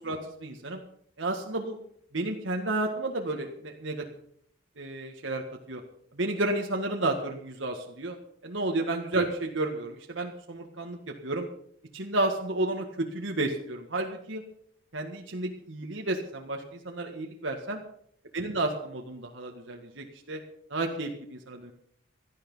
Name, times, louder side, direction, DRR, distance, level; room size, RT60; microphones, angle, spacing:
voice 1, 0.0-0.8 1.2-1.8 2.1-4.1 4.8-5.8 6.1-8.2 8.4-11.5 11.9-14.4 14.9-17.8 18.3-20.4 20.7-21.7, right 2 dB, 75° right, 2 dB, 1.8 m, -31 dB
17.0 x 13.0 x 5.6 m, 0.67 s
head